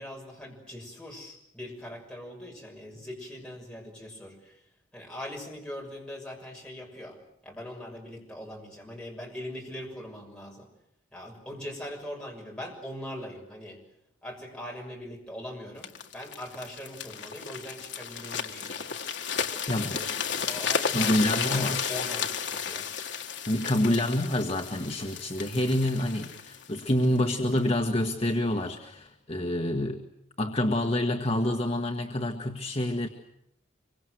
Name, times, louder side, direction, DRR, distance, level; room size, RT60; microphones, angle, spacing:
voice 1, 0.0-4.6 4.9-7.2 7.4-10.7 11.1-13.8 14.2-18.9 19.8-20.1 20.5-22.9 27.1-27.2, left 1 dB, 5° left, -1 dB, 6.4 m, -41 dB
sound 1, 15.8-27.7 28.3-28.5, left 6 dB, 60° left, 1.9 m, -33 dB
voice 2, 19.7-20.0 20.9-22.0 23.5-30.0 30.4-33.1, left 1 dB, 30° left, 2 dB, 1.5 m, -27 dB
25.5 x 24.0 x 7.9 m, 0.77 s
head